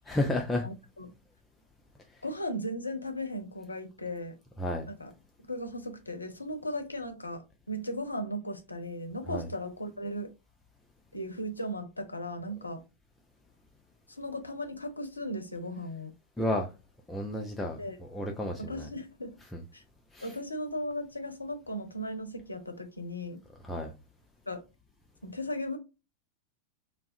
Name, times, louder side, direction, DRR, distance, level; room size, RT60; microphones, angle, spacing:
voice 1, 0.1-0.7 4.6-4.9 9.3-9.5 16.4-16.7 17.1-17.8 18.1-18.9 19.5-19.6 20.1-20.3 23.6-23.9, left 1 dB, 10° left, 0.4 m, -31 dB
voice 2, 0.6-1.1 2.2-4.4 4.9-5.1 5.5-10.3 11.1-12.8 14.1-16.1 17.8-18.0 18.6-19.4 19.7-19.8 20.2-23.4 24.5-24.6 25.2-25.8, equal, 80° left, 0.5 m, -37 dB
2.3 x 2.0 x 2.6 m
figure-of-eight pair, 90°, 0 cm